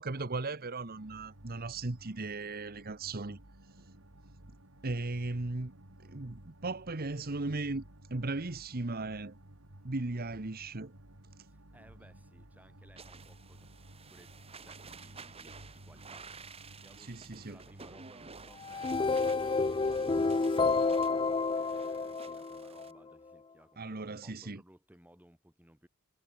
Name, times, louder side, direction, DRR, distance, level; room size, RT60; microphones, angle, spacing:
voice 1, 0.0-3.4 4.8-5.7 6.0-7.8 8.1-9.4 9.8-10.9 17.0-17.6 23.8-24.6, right 2 dB, 45° right, 1.2 m, -37 dB
sound 1, 0.9-20.4, right 1 dB, 75° right, 3.5 m, -55 dB
voice 2, 11.5-13.8 14.1-14.3 14.6-16.3 16.8-20.5 21.1-25.9, right 1 dB, 10° right, 6.9 m, -61 dB
sound 2, 13.0-22.9, right 5 dB, 30° right, 1.9 m, -52 dB
sound 3, 18.6-22.9, left 4 dB, 25° left, 0.4 m, -30 dB
head